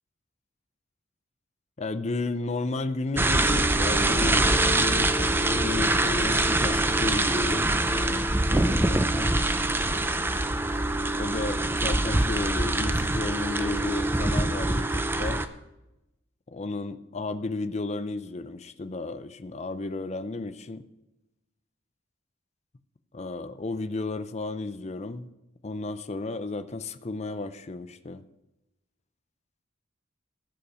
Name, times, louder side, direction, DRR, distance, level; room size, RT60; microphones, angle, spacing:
voice 1, 1.8-9.4 11.2-15.5 16.5-20.8 23.1-25.3 25.6-28.2, left 3 dB, 35° left, 11 dB, 0.6 m, -33 dB
sound 1, 3.1-15.5, right 2 dB, 10° right, 0.5 m, -24 dB
15.5 x 5.8 x 6.2 m, 0.96 s
head